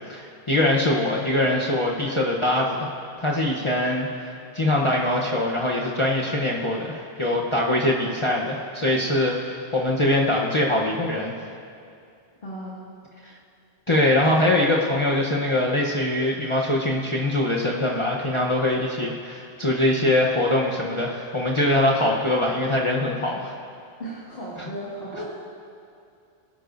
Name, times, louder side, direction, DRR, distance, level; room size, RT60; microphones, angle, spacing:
voice 1, 0.1-2.9 3.2-11.4 13.2-13.3 13.9-23.5, left 1 dB, 30° left, -3 dB, 1.0 m, -23 dB
voice 2, 12.4-12.8 24.0-25.2, right 1 dB, 60° left, -7 dB, 2.2 m, -35 dB
21.5 x 12.0 x 2.6 m, 2.4 s
omnidirectional pair, 1.0 m